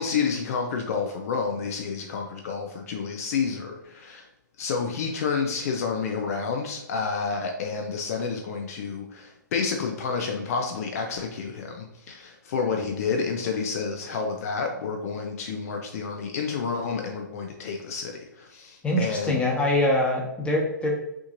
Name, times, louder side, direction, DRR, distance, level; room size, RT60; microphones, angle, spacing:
voice 1, 0.0-4.3 4.6-19.4, left 5 dB, 50° left, 3 dB, 0.7 m, -29 dB
voice 2, 18.8-20.9, left 1 dB, 10° left, -1 dB, 1.1 m, -24 dB
6.0 x 3.0 x 2.6 m, 0.87 s
hypercardioid pair, 125°, 10 cm